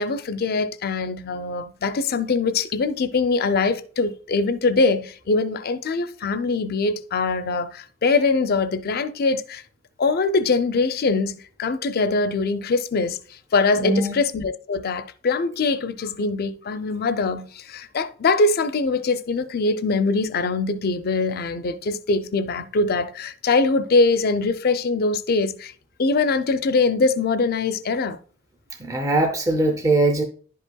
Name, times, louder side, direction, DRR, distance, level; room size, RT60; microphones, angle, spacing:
voice 1, 0.0-9.6 10.0-13.2 13.5-25.7 26.0-28.2, left 3 dB, 45° left, 0.5 m, -22 dB
voice 2, 13.8-14.2 28.8-30.2, right 2 dB, 15° right, 0.5 m, -21 dB
11.0 x 5.4 x 2.2 m
head